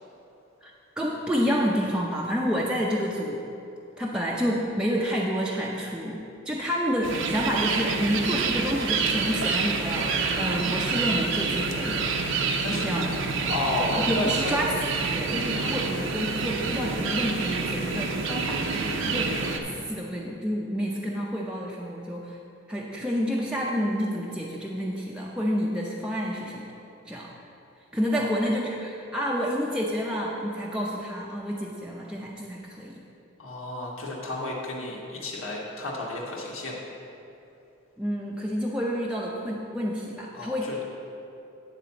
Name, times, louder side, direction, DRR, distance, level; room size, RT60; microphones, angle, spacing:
voice 1, 0.6-3.4 4.0-13.1 14.0-14.7 15.1-22.4 22.7-26.7 27.1-27.3 27.9-33.0 38.0-40.8, equal, 5° right, -4 dB, 0.5 m, -29 dB
sound 1, 7.0-19.6, right 4 dB, 65° right, 0.6 m, -27 dB
voice 2, 13.5-14.5 28.1-28.3 33.4-36.7 40.3-40.8, left 2 dB, 80° left, -3 dB, 1.4 m, -32 dB
9.2 x 4.2 x 6.9 m, 2.8 s
head